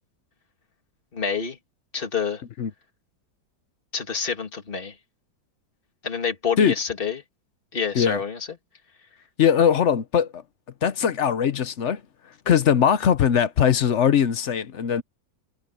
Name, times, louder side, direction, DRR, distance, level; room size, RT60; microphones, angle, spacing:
voice 1, 1.1-1.6 1.9-2.4 3.9-5.0 6.0-7.2 7.7-8.5, left 6 dB, 30° left, 2.4 m, -27 dB
voice 2, 9.4-10.4 10.8-12.0 12.3-15.0, left 8 dB, 55° left, 0.8 m, -20 dB
omnidirectional pair, 2.1 m